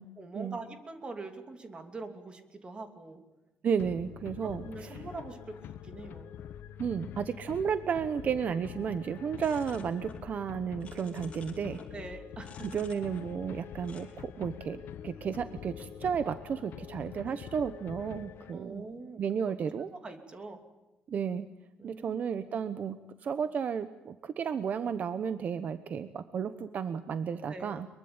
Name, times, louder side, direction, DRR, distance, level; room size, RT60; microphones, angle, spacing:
voice 1, 0.2-3.2 4.4-6.3 11.9-12.7 17.2-17.4 18.5-19.2 19.9-20.6 21.8-22.2 27.5-27.8, right 3 dB, 25° right, 7 dB, 2.9 m, -44 dB
voice 2, 3.6-5.0 6.8-11.8 12.7-18.8 19.2-19.9 21.1-21.5 21.8-27.9, right 7 dB, 45° right, 12 dB, 1.0 m, -33 dB
sound 1, 3.8-18.8, left 9 dB, 70° left, 1.4 m, -45 dB
sound 2, 9.3-10.3 10.5-12.0 12.4-13.5 13.8-14.0, left 5 dB, 35° left, 4.3 m, -53 dB
23.5 x 23.0 x 8.9 m, 1.0 s
cardioid pair, 155°, 4 cm